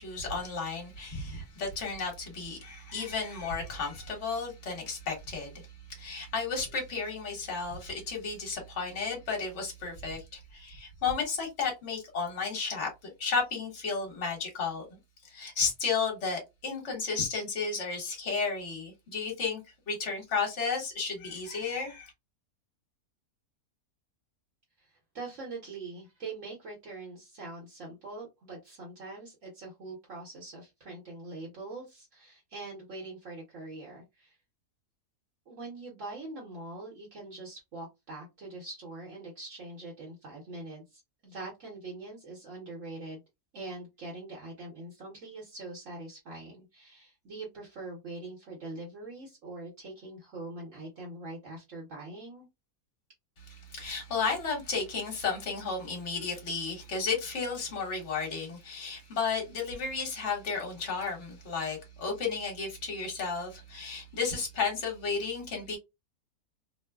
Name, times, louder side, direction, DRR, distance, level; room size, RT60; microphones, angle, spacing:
voice 1, 0.0-12.9 13.2-14.9 15.2-19.6 19.9-22.1 53.4-65.8, left 5 dB, 50° left, 1.4 m, -33 dB
voice 2, 24.8-34.4 35.5-43.2 43.5-52.5, right 2 dB, 60° right, 1.2 m, -43 dB
3.0 x 2.1 x 2.2 m
omnidirectional pair, 1.6 m